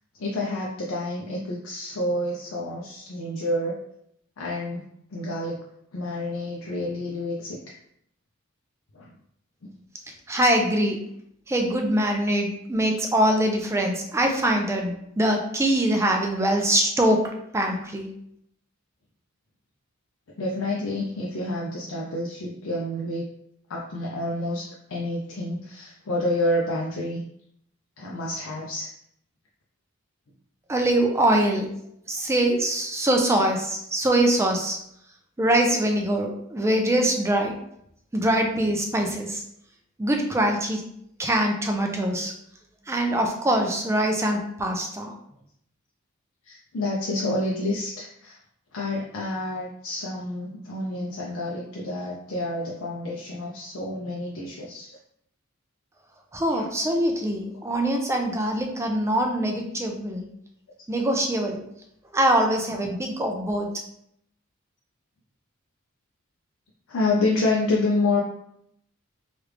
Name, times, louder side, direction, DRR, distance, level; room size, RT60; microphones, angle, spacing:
voice 1, 0.2-3.7 4.4-4.8 5.1-5.6 5.9-7.7 8.9-9.1 20.4-23.3 23.7-24.6 24.9-27.2 28.0-28.9 46.4-48.4 48.7-55.0 56.5-56.7 66.9-68.2, left 2 dB, 70° left, -4 dB, 0.5 m, -28 dB
voice 2, 10.3-11.0 11.5-17.2 17.5-18.1 30.7-31.7 32.1-34.8 35.4-37.6 38.1-39.4 40.0-40.8 41.2-42.3 42.9-45.1 56.3-60.3 60.9-61.6 62.1-63.7, right 1 dB, 15° right, 2 dB, 0.4 m, -23 dB
3.2 x 2.4 x 3.2 m, 0.72 s
head